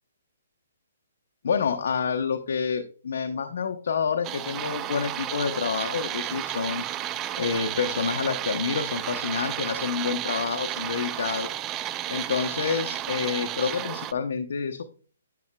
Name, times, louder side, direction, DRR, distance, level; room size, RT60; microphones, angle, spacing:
voice 1, 1.4-6.8 7.4-11.5 12.1-14.9, left 6 dB, 65° left, 5 dB, 0.8 m, -28 dB
sound 1, 4.2-14.1, right 12 dB, 20° right, 0.4 m, -32 dB
10.5 x 6.7 x 2.3 m, 0.39 s
hypercardioid pair, 150°, 0 cm